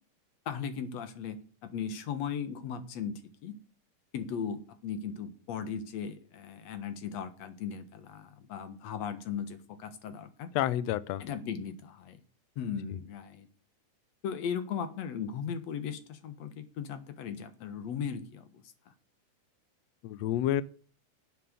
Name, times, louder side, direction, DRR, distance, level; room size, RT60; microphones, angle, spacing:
voice 1, 0.5-3.6 4.1-10.5 11.2-12.2 12.6-13.5 14.2-18.6, left 7 dB, 60° left, 10 dB, 2.3 m, -37 dB
voice 2, 10.5-11.2 20.0-20.6, left 12 dB, 85° left, 17 dB, 1.5 m, -29 dB
11.5 x 7.7 x 6.7 m, 0.41 s
omnidirectional pair, 3.8 m